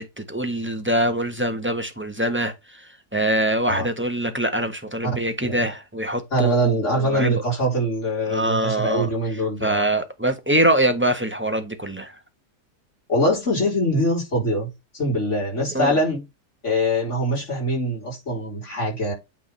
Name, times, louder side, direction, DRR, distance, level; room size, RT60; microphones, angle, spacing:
voice 1, 0.0-2.5 3.1-7.3 8.3-9.1 9.6-12.1 15.7-15.9, right 1 dB, 10° right, 1.3 m, -23 dB
voice 2, 6.3-9.8 13.1-14.7 14.9-16.2 16.6-19.1, equal, 50° left, 4.7 m, -23 dB
9.1 x 3.8 x 4.0 m
omnidirectional pair, 1.6 m